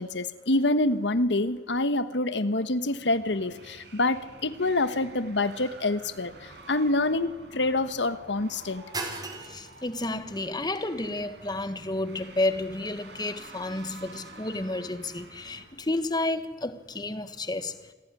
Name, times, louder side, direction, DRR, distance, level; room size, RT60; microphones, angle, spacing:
voice 1, 0.0-6.3 6.7-8.8, left 2 dB, 90° left, 1.3 m, -26 dB
sound 1, 2.7-15.6, right 2 dB, 70° right, 5.6 m, -49 dB
sound 2, 4.3-14.2, right 3 dB, 25° right, 3.9 m, -45 dB
voice 2, 9.5-17.7, left 2 dB, 25° left, 1.5 m, -31 dB
27.0 x 17.5 x 9.9 m
head